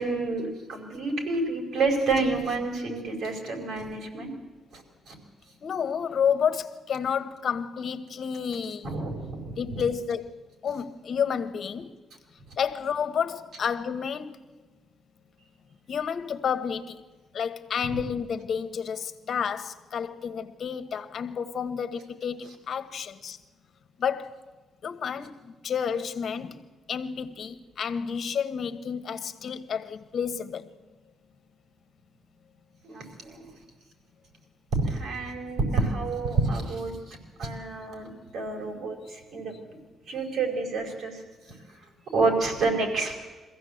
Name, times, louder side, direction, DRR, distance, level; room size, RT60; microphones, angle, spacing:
voice 1, 0.0-4.3 4.7-5.2 8.8-9.8 32.8-33.5 34.7-39.8 40.1-41.2 42.1-43.2, right 3 dB, 70° right, 5.0 m, -29 dB
voice 2, 5.6-9.0 9.6-10.3 10.6-11.9 12.6-14.4 15.9-17.0 17.3-23.4 24.0-24.3 24.8-26.6 26.9-30.7, left 7 dB, 55° left, 1.3 m, -30 dB
22.0 x 15.5 x 8.0 m
cardioid pair, 90°, 0 cm